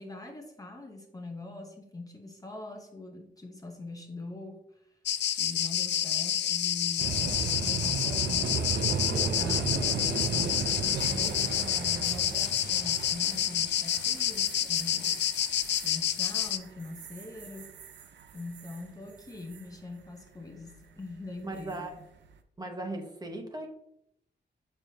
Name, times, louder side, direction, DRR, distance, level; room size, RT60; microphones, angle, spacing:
voice 1, 0.0-5.0 5.4-15.2 15.8-17.7 18.3-21.9, left 2 dB, 20° left, 2 dB, 0.8 m, -43 dB
sound 1, 5.1-16.6, left 10 dB, 75° left, 0.4 m, -29 dB
sound 2, 7.0-18.8 19.2-19.6 21.5-21.9, right 5 dB, 85° right, 0.6 m, -35 dB
voice 2, 21.4-21.9 22.6-23.7, right 2 dB, 20° right, 3 dB, 1.1 m, -37 dB
6.7 x 5.6 x 2.8 m, 0.75 s
wide cardioid pair, 125°, 18 cm